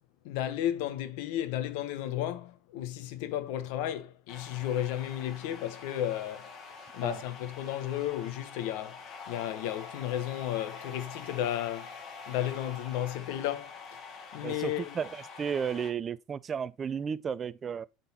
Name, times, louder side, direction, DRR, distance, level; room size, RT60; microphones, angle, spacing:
voice 1, 0.2-6.6 6.9-14.0 14.3-14.9, left 12 dB, 65° left, 1.0 m, -33 dB
sound 1, 4.3-15.9, left 5 dB, 35° left, 1.3 m, -46 dB
voice 2, 14.4-17.9, right 7 dB, 25° right, 0.3 m, -33 dB
7.9 x 4.0 x 4.2 m
supercardioid pair, 150°, 0 cm